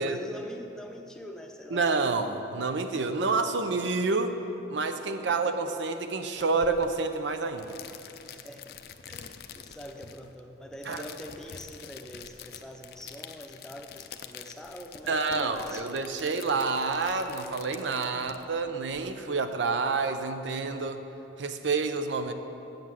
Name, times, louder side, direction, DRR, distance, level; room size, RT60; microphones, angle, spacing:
voice 1, 0.0-1.9 5.2-5.4 8.3-8.8 9.1-16.0 18.1-18.3, equal, 5° left, 2 dB, 0.6 m, -44 dB
voice 2, 1.7-4.4 4.7-7.8 10.9-11.0 15.1-21.0 21.4-22.3, right 4 dB, 90° right, 8 dB, 0.6 m, -28 dB
sound 1, 6.4-19.0, left 8 dB, 55° left, 0.4 m, -47 dB
8.4 x 7.8 x 7.5 m, 2.9 s
head